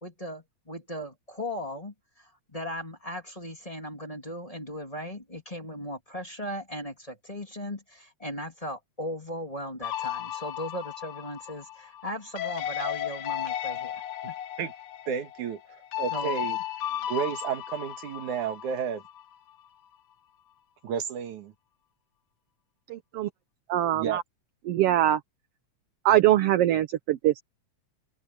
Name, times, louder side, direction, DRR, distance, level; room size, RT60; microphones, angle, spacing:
voice 1, 0.0-14.3 16.1-16.4, equal, 10° left, 3.0 m, -37 dB
sound 1, 9.8-19.2, left 11 dB, 65° left, 1.5 m, -35 dB
voice 2, 15.1-15.6 16.0-16.6 17.1-19.0 20.8-21.5 23.9-24.2, right 8 dB, 85° right, 3.2 m, -31 dB
voice 3, 22.9-23.3 23.7-24.1 24.7-25.2 26.1-27.4, right 13 dB, 70° right, 1.6 m, -22 dB
open air
omnidirectional pair, 3.3 m